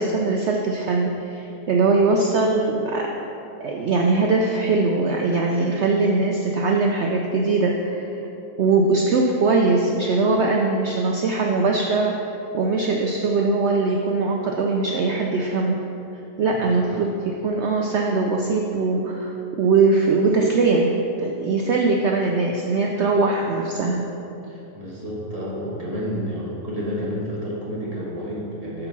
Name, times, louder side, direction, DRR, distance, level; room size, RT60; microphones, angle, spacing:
voice 1, 0.0-3.3 3.6-8.1 8.6-12.1 12.5-15.8 16.4-24.1, right 3 dB, 65° right, 0 dB, 0.6 m, -21 dB
voice 2, 24.4-28.9, equal, 25° right, -5 dB, 1.3 m, -30 dB
8.3 x 3.9 x 5.9 m, 3.0 s
omnidirectional pair, 1.7 m